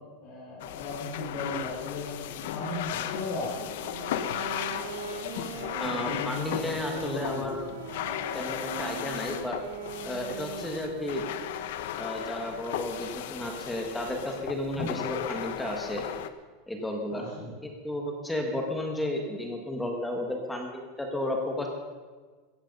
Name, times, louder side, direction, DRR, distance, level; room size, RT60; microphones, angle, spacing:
voice 1, 0.2-3.9 5.8-7.7 14.8-15.0 17.1-17.5, left 2 dB, 40° left, -7 dB, 5.1 m, -37 dB
sound 1, 0.6-16.3, left 11 dB, 60° left, 1.0 m, -36 dB
Wind instrument woodwind instrument, 3.7-11.8, right 7 dB, 80° right, 1.9 m, -41 dB
voice 2, 5.8-7.6 8.3-9.6 10.0-11.3 12.0-16.0 16.7-17.3 17.6-21.7, left 1 dB, 5° left, 2 dB, 1.6 m, -33 dB
16.0 x 14.5 x 5.4 m, 1.4 s
supercardioid pair, 175°, 0 cm